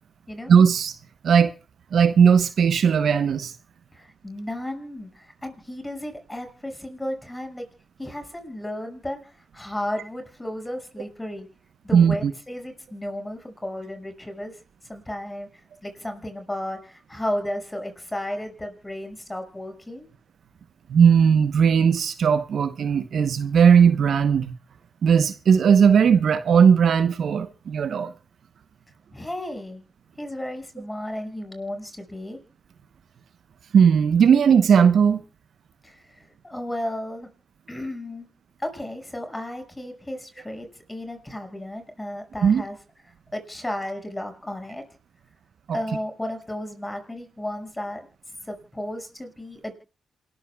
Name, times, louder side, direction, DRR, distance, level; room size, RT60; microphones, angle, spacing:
voice 1, 0.5-0.9 1.2-1.5 1.9-3.5 11.9-12.3 20.9-24.5 25.0-28.1 33.7-35.2 42.4-42.6 45.7-45.8, right 7 dB, 70° right, 0.9 m, -17 dB
voice 2, 3.9-7.7 8.0-11.5 11.8-14.6 14.9-15.5 15.8-20.1 29.1-29.8 30.2-32.4 35.8-37.3 37.7-38.3 38.6-42.8 43.3-44.8 45.7-48.0 48.4-49.7, left 1 dB, 15° left, 5.9 m, -33 dB
27.5 x 13.5 x 2.3 m
supercardioid pair, 50°, 0 cm